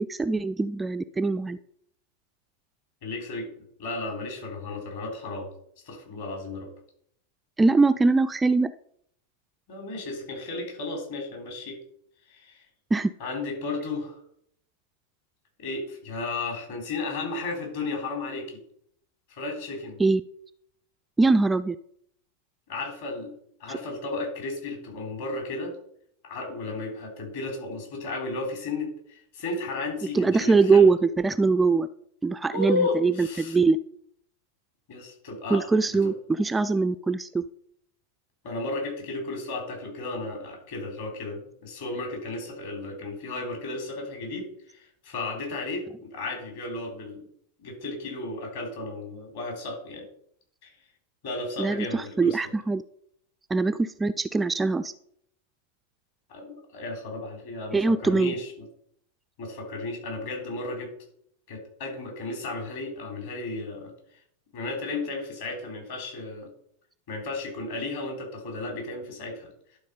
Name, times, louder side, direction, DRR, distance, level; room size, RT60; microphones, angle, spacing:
voice 1, 0.0-1.6 7.6-8.7 12.9-13.1 20.0-20.2 21.2-21.8 23.7-23.8 30.1-31.9 32.2-33.8 35.5-37.4 51.6-52.8 53.5-54.9 57.7-58.3, right 3 dB, 10° right, 11 dB, 0.3 m, -22 dB
voice 2, 3.0-3.5 3.8-5.5 5.9-6.7 9.7-11.8 12.3-12.6 13.2-14.2 15.6-18.6 19.3-20.0 22.7-23.3 23.6-25.7 26.2-30.9 32.5-33.6 34.9-35.6 35.9-36.0 38.4-47.3 47.6-50.1 50.6-50.7 51.2-52.4 56.3-58.5 59.4-60.9 61.5-63.9 64.5-66.5 67.1-69.5, left 3 dB, 55° left, 1 dB, 3.5 m, -34 dB
11.5 x 4.1 x 5.2 m, 0.68 s
figure-of-eight pair, 90°, 0 cm